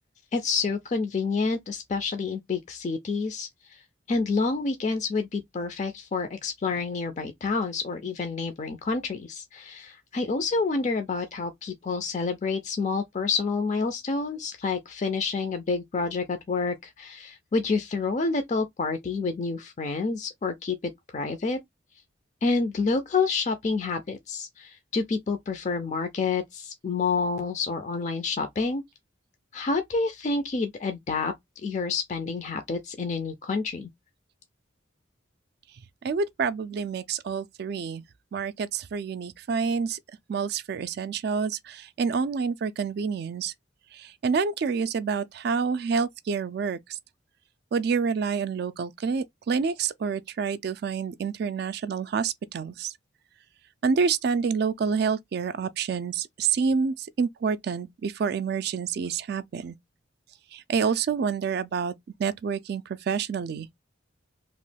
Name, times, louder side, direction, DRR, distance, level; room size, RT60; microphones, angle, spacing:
voice 1, 0.3-3.8 4.1-21.6 22.4-28.8 29.5-31.3 31.6-33.9, left 4 dB, 35° left, 0.4 m, -28 dB
voice 2, 36.0-38.0 38.3-40.0 40.3-43.5 43.9-47.0 47.7-52.9 53.8-59.8 60.5-61.9 62.2-63.7, right 5 dB, 55° right, 0.3 m, -28 dB
2.9 x 2.2 x 3.2 m
head